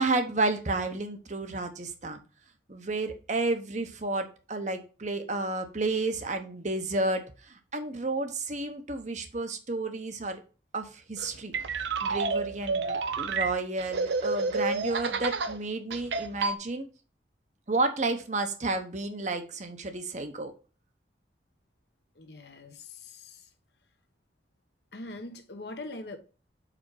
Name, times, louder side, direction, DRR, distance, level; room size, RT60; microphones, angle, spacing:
voice 1, 0.0-2.2 2.7-10.4 10.7-11.5 12.0-16.9 17.7-20.5, right 2 dB, 40° right, 0.9 m, -31 dB
sound 1, 11.2-15.6 15.9-16.6, right 4 dB, 75° right, 0.7 m, -30 dB
voice 2, 22.2-23.5 24.9-26.2, left 2 dB, 65° left, 1.1 m, -42 dB
5.0 x 5.0 x 4.8 m
head